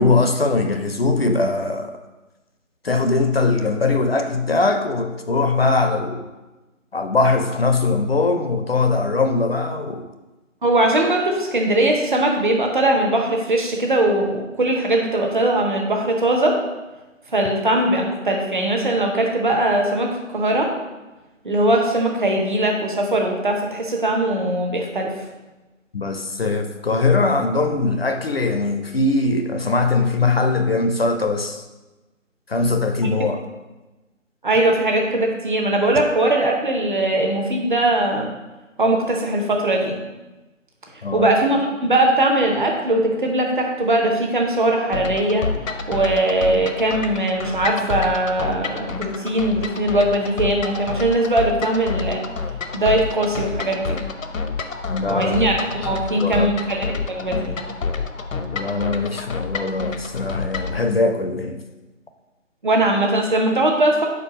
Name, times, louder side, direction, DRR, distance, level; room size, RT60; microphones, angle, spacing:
voice 1, 0.0-1.9 2.8-6.3 6.9-10.1 25.9-31.6 32.5-33.4 41.0-41.3 54.9-55.4 56.2-56.5 58.5-61.6, left 3 dB, 50° left, 7 dB, 0.5 m, -21 dB
voice 2, 10.6-16.6 17.3-20.7 21.4-25.2 34.4-38.3 38.8-40.0 41.1-45.5 45.9-52.2 52.7-54.0 55.0-57.6 62.6-64.1, right 1 dB, 40° right, 1 dB, 0.8 m, -20 dB
sound 1, 44.9-60.8, left 5 dB, 80° left, 0.7 m, -29 dB
4.6 x 4.5 x 5.0 m, 1.1 s
figure-of-eight pair, 165°, 39 cm